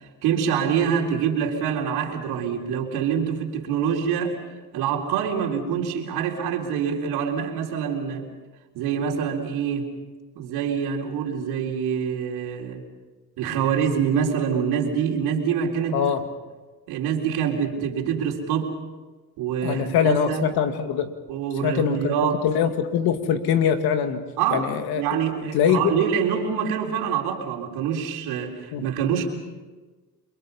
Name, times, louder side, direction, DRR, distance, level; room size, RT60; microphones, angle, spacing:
voice 1, 0.2-4.4 4.7-8.3 8.7-9.9 10.4-12.9 13.4-16.0 16.9-18.7 19.4-20.4 21.3-22.4 24.4-29.3, right 7 dB, 85° right, 0 dB, 3.8 m, -25 dB
voice 2, 15.9-16.2 19.6-21.1 21.6-22.1 22.4-24.2 24.5-25.0 25.5-26.0 28.7-28.8, left 8 dB, 75° left, 7 dB, 2.3 m, -22 dB
29.5 x 23.0 x 5.5 m, 1.3 s
cardioid pair, 85°, 37 cm